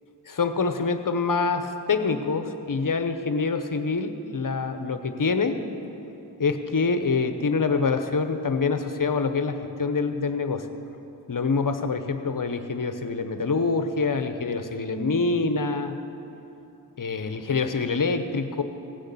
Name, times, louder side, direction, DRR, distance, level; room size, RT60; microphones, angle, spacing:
voice 1, 0.3-5.6 6.4-10.7 11.3-16.0 17.0-18.6, left 4 dB, 45° left, 8 dB, 0.9 m, -25 dB
17.0 x 6.4 x 8.4 m, 2.9 s
cardioid pair, 50°, 44 cm